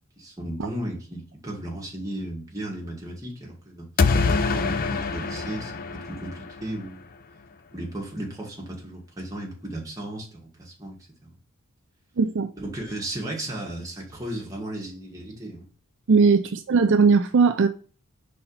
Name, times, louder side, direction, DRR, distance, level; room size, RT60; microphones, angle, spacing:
voice 1, 0.2-3.9 4.2-7.0 7.7-11.3 12.5-15.7, right 1 dB, 15° right, 2.2 m, -35 dB
sound 1, 4.0-6.9, left 4 dB, 40° left, 0.5 m, -25 dB
voice 2, 12.2-12.5 16.1-17.7, right 5 dB, 55° right, 0.5 m, -19 dB
5.3 x 4.2 x 5.7 m
head